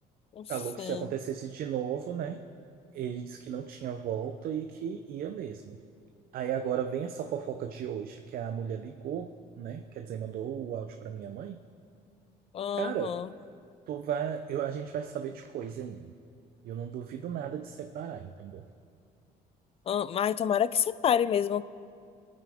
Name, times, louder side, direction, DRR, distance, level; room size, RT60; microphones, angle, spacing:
voice 1, 0.5-2.4 2.9-5.8 6.3-9.3 9.6-11.6 12.8-13.2 13.9-16.1 16.6-18.6, right 9 dB, 60° right, 7 dB, 0.6 m, -35 dB
voice 2, 12.5-13.3 19.9-21.6, left 9 dB, 35° left, 17 dB, 0.4 m, -28 dB
23.0 x 9.2 x 3.5 m, 2.4 s
cardioid pair, 110°, 17 cm